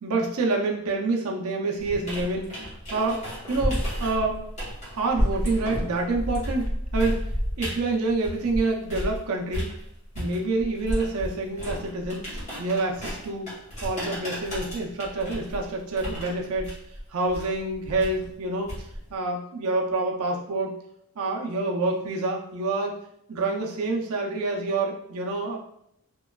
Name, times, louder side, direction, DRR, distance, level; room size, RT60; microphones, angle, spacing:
voice 1, 0.0-3.2 3.5-4.4 4.9-7.3 7.6-9.7 10.2-13.5 13.8-16.8 17.1-20.7 21.2-23.0 23.3-25.6, right 3 dB, 75° right, 0 dB, 0.5 m, -27 dB
down squeaky stairs, 1.8-9.2 9.5-19.1, equal, 30° left, 0.9 m, -32 dB
2.9 x 2.2 x 2.2 m, 0.76 s
head